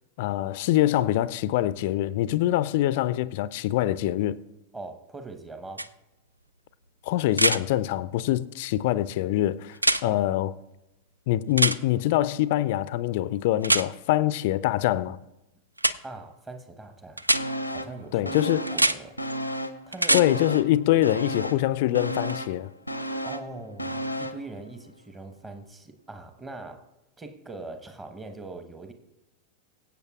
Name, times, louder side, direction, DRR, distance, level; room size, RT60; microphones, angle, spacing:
voice 1, 0.2-4.4 7.0-9.8 10.0-10.5 11.3-15.2 18.1-18.6 20.1-22.7, left 14 dB, 50° left, 0.4 m, -24 dB
voice 2, 4.7-5.9 10.0-10.3 16.0-17.3 17.7-18.4 18.7-19.2 19.9-20.3 23.2-26.8 27.2-28.9, right 2 dB, 15° right, 1.1 m, -41 dB
sound 1, 5.8-5.9 7.3-7.6 9.8-10.0 11.6-11.8 13.6-13.9 15.8-15.9 17.2-17.4 18.7-19.0 19.9-20.2 22.3-22.4, right 1 dB, 85° right, 0.3 m, -22 dB
sound 2, 17.3-18.0 18.2-19.8 20.1-24.5 24.8-24.9, equal, 90° left, 0.6 m, -33 dB
23.0 x 8.1 x 2.4 m
figure-of-eight pair, 90°, 0 cm